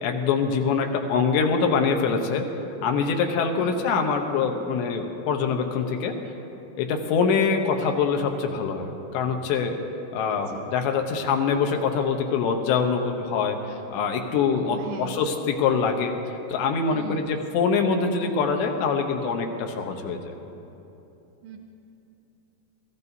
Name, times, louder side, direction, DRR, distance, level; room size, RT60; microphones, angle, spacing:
voice 1, 0.0-2.5 2.8-6.2 6.8-9.8 10.1-16.2 16.5-20.3, left 5 dB, 85° left, 4 dB, 3.2 m, -24 dB
voice 2, 3.6-3.9 7.2-7.5 10.3-10.7 14.5-15.2 16.9-17.3 21.4-21.6, right 6 dB, 80° right, 4 dB, 2.6 m, -39 dB
24.5 x 14.0 x 2.7 m, 2.9 s
omnidirectional pair, 5.0 m